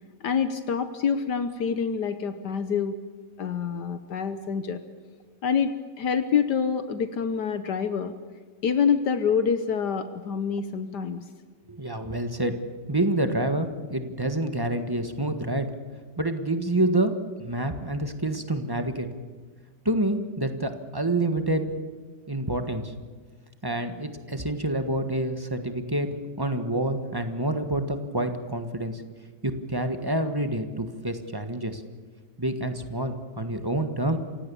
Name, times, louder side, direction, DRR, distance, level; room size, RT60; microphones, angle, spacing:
voice 1, 0.2-2.9 3.4-4.8 5.4-8.1 8.6-11.2, left 6 dB, 70° left, 10 dB, 1.6 m, -26 dB
voice 2, 11.7-12.6 12.9-15.6 16.2-19.1 19.8-21.6 22.3-22.9 23.6-29.0 29.4-31.8 32.4-34.2, right 1 dB, 15° right, 7 dB, 1.3 m, -27 dB
28.5 x 16.5 x 7.0 m, 1.5 s
omnidirectional pair, 1.9 m